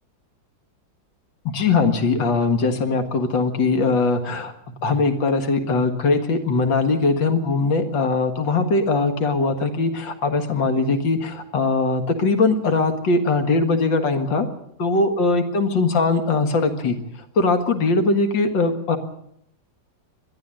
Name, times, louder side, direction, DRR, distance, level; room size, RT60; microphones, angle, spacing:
voice 1, 1.5-14.5 14.8-17.0 17.4-19.0, left 3 dB, 85° left, 6 dB, 2.5 m, -21 dB
21.5 x 13.5 x 8.9 m, 0.75 s
omnidirectional pair, 2.0 m